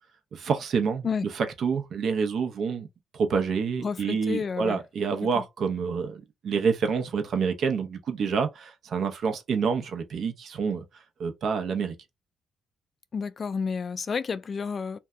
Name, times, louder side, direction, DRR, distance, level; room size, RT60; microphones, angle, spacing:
voice 1, 0.3-1.1 1.3-2.9 3.1-10.8 11.2-12.0, right 5 dB, 60° right, 0.7 m, -27 dB
voice 2, 3.8-4.8 5.3-5.4 13.1-15.0, left 5 dB, 45° left, 0.3 m, -30 dB
2.6 x 2.2 x 3.6 m
cardioid pair, 90°, 0 cm